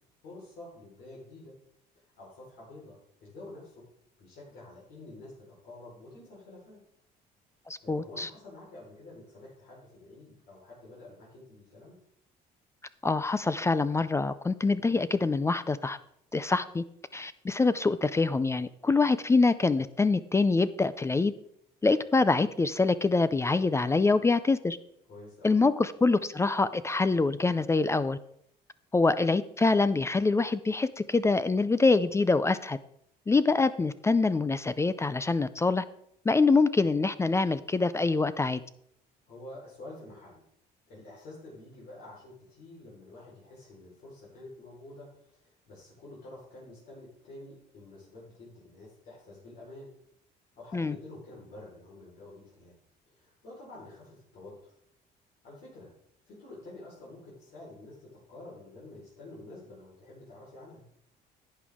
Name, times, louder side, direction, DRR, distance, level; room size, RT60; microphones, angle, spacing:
voice 1, 0.2-1.5 2.0-3.8 4.2-6.8 7.8-12.0 25.1-25.5 39.3-40.4 40.9-49.9 50.6-52.7 53.1-54.7 55.4-55.9 56.3-60.8, left 2 dB, 70° left, -6 dB, 4.4 m, -48 dB
voice 2, 7.7-8.3 13.0-16.0 16.3-16.8 17.1-21.3 21.8-24.8 25.4-28.2 28.9-32.8 33.3-35.8 36.3-38.6 50.7-50.9, left 3 dB, 15° left, 15 dB, 0.4 m, -25 dB
11.0 x 8.5 x 3.6 m, 0.71 s
cardioid pair, 110°, 17 cm